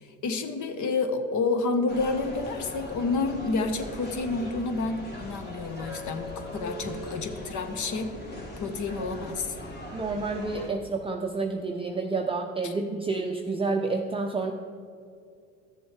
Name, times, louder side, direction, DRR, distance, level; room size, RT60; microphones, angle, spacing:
voice 1, 0.2-8.1 8.6-9.5 12.6-12.7, left 3 dB, 50° left, 7 dB, 1.1 m, -29 dB
sound 1, 1.9-10.7, left 1 dB, 25° left, 2.3 m, -40 dB
voice 2, 9.9-14.5, right 3 dB, 15° right, 2 dB, 0.6 m, -29 dB
13.5 x 6.9 x 3.3 m, 2.3 s
hypercardioid pair, 75°, 39 cm